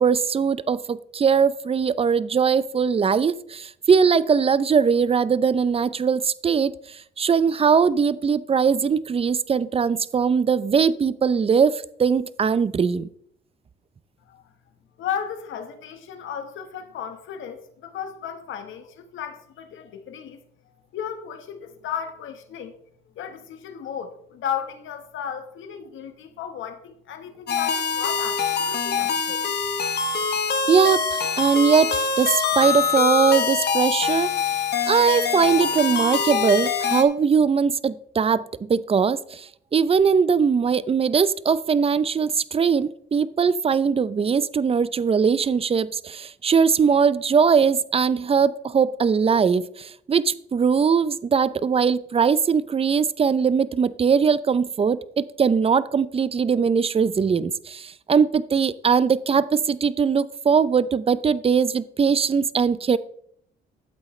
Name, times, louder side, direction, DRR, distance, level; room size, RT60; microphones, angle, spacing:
voice 1, 0.0-13.1 30.7-32.3 32.6-34.6 34.9-63.0, right 6 dB, 30° right, 17 dB, 0.6 m, -21 dB
voice 2, 15.0-20.4 20.9-22.7 23.2-29.5, left 8 dB, 80° left, 8 dB, 1.4 m, -34 dB
sound 1, 27.5-37.0, left 6 dB, 55° left, 1.3 m, -24 dB
12.5 x 8.0 x 3.2 m, 0.66 s
cardioid pair, 90°, 20 cm